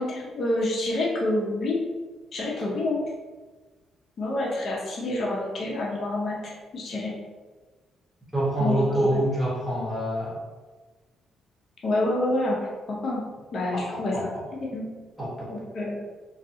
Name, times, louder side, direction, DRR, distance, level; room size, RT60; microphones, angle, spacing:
voice 1, 0.0-1.8 2.3-3.0 4.2-7.2 8.6-8.8 9.1-9.2 11.8-13.2 13.5-14.2 14.7-14.9 15.5-15.9, left 1 dB, 55° left, -4 dB, 0.6 m, -28 dB
voice 2, 8.3-10.4 13.7-14.4 15.2-15.5, right 1 dB, ahead, -8 dB, 1.2 m, -26 dB
2.3 x 2.3 x 2.7 m, 1.3 s
cardioid pair, 90°, 0 cm